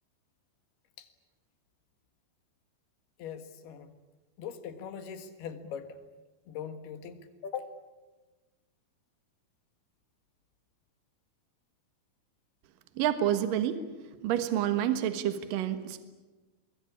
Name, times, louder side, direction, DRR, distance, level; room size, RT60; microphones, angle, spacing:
voice 1, 3.2-3.9 4.4-6.0 6.5-7.7, left 7 dB, 85° left, 9 dB, 3.7 m, -41 dB
voice 2, 13.0-13.8 14.2-16.0, right 10 dB, 65° right, 9 dB, 3.0 m, -28 dB
24.0 x 21.0 x 10.0 m, 1.2 s
omnidirectional pair, 4.4 m